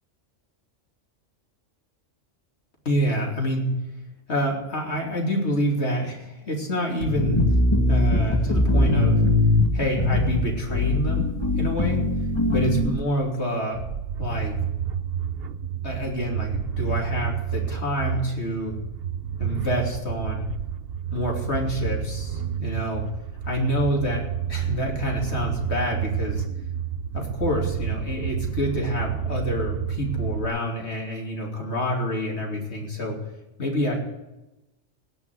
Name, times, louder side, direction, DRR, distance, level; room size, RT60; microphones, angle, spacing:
voice 1, 2.8-3.7 4.3-7.4 7.9-9.2 9.7-12.0 12.5-13.8 14.2-14.6 15.8-18.8 19.4-20.5 21.1-23.0 23.4-26.4 27.1-33.2 33.6-34.0, equal, 60° left, 0 dB, 3.2 m, -27 dB
sound 1, 7.0-13.0, left 2 dB, 20° left, 1.9 m, -21 dB
sound 2, 13.7-30.4, right 9 dB, 60° right, 0.8 m, -30 dB
17.5 x 6.0 x 9.4 m, 0.99 s
omnidirectional pair, 1.3 m